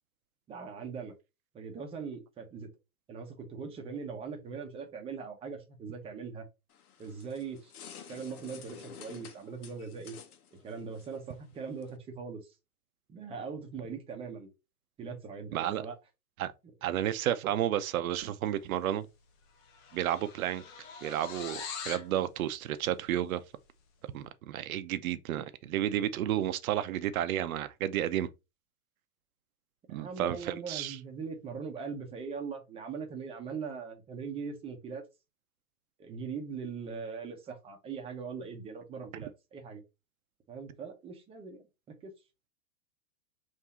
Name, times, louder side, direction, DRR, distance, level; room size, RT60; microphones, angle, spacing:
voice 1, 0.5-1.1 1.5-2.7 3.1-6.5 7.0-7.7 8.1-10.1 10.5-12.6 13.1-14.5 15.0-15.9 29.9-35.0 36.0-39.8 40.5-42.1, right 5 dB, 15° right, 0.7 m, -41 dB
sound 1, 6.7-12.0, left 8 dB, 80° left, 1.0 m, -51 dB
voice 2, 15.5-15.8 16.4-16.5 16.8-19.1 19.9-20.6 21.0-23.4 24.1-28.3 29.9-31.0, right 11 dB, 70° right, 0.7 m, -31 dB
sound 2, 18.9-19.2 19.4-22.1, left 6 dB, 25° left, 0.5 m, -43 dB
3.6 x 2.7 x 4.2 m
hypercardioid pair, 145°, 44 cm